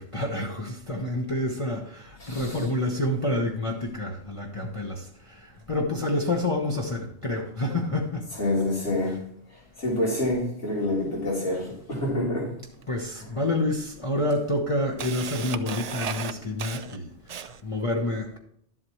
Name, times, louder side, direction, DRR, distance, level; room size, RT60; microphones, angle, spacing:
voice 1, 0.0-8.3 12.9-18.4, left 1 dB, 30° left, 1.0 m, -28 dB
voice 2, 2.2-2.6 8.4-9.2 9.8-12.5, left 1 dB, 80° left, 4.2 m, -27 dB
Camera, 12.8-12.9 13.8-13.9 14.3-17.8, right 7 dB, 55° right, 0.4 m, -35 dB
12.0 x 7.7 x 3.1 m
omnidirectional pair, 1.2 m